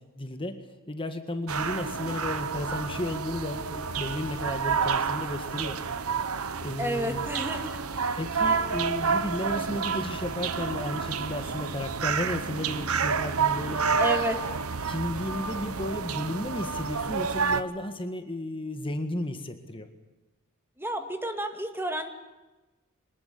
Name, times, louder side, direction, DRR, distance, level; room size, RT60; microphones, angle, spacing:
voice 1, 0.2-0.6 0.9-5.8 6.6-7.3 8.2-13.9 14.9-19.9, left 1 dB, 25° left, 7 dB, 1.7 m, -33 dB
sound 1, 1.5-17.6, right 5 dB, 85° right, 1.2 m, -29 dB
voice 2, 6.8-7.8 14.0-14.4 20.8-22.1, right 1 dB, 10° right, 6 dB, 2.1 m, -30 dB
23.5 x 20.0 x 8.5 m, 1.1 s
head